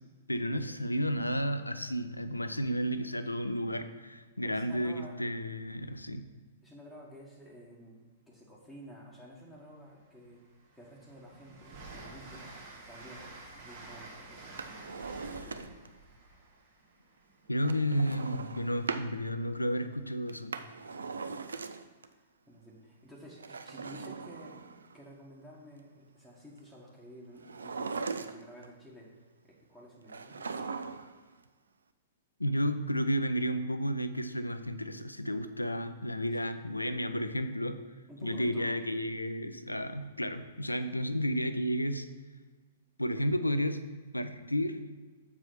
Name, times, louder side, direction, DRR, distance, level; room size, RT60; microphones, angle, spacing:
voice 1, 0.3-6.2 17.5-20.5 32.4-37.8 38.2-42.1 43.0-43.8 44.1-44.8, equal, 90° left, 10 dB, 0.5 m, -32 dB
voice 2, 4.4-5.2 6.6-8.0 8.3-10.4 10.7-12.5 12.8-14.6 15.3-15.8 21.0-21.4 21.9-29.1 29.4-30.6 36.2-36.4 38.1-38.8, equal, 5° right, -6 dB, 1.4 m, -51 dB
Train, 9.6-9.7 10.1-17.8, right 2 dB, 45° right, 2.0 m, -50 dB
Drawer open or close, 14.4-16.0 17.6-19.1 20.3-22.1 23.3-25.0 27.4-28.7 30.1-31.2 31.5-31.6, right 4 dB, 70° right, 0.4 m, -39 dB
7.2 x 4.8 x 5.8 m, 1.4 s
figure-of-eight pair, 110°, 0 cm